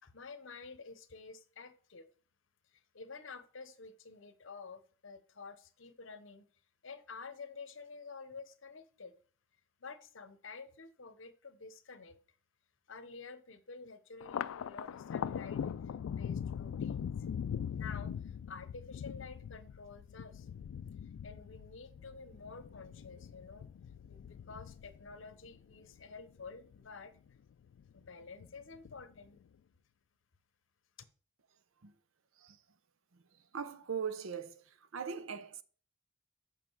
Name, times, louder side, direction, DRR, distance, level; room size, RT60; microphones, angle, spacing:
voice 1, 0.0-2.1 2.6-6.5 6.8-9.1 9.8-12.2 12.9-17.1 17.7-20.5 21.0-23.7 24.1-27.1 27.9-29.4, left 4 dB, 70° left, 0.8 m, -50 dB
Thunder, 14.2-26.9 27.3-28.1 28.4-29.3, left 8 dB, 90° left, 0.3 m, -41 dB
voice 2, 33.5-34.6 34.9-35.6, right 7 dB, 80° right, 0.7 m, -39 dB
7.4 x 6.1 x 4.6 m
head